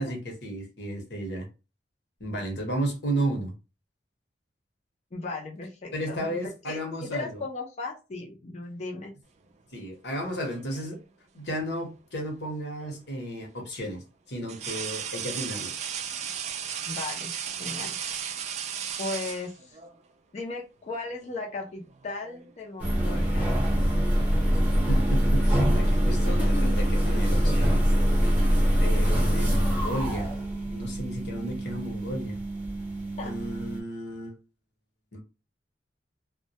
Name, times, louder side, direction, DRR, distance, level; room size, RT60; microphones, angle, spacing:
voice 1, 0.0-1.5 2.2-3.5 5.9-7.4 9.7-11.0 11.3-15.7 24.8-27.9 28.8-30.3 30.7-32.4 33.2-34.4 35.1-35.2, right 1 dB, 65° left, 0.9 m, -33 dB
voice 2, 5.1-6.4 6.7-9.1 16.9-17.3 17.6-18.0 19.0-19.8 20.3-23.5 26.2-26.8 33.2-33.3, left 3 dB, 40° left, 0.4 m, -36 dB
sound 1, 10.2-11.0 12.8-13.0 14.5-19.9 21.1-21.3 21.7-22.5 22.8-23.1 24.0-26.6, right 8 dB, 40° right, 0.3 m, -36 dB
sound 2, 22.8-33.8, equal, 5° right, 0.8 m, -24 dB
2.2 x 2.1 x 2.7 m
head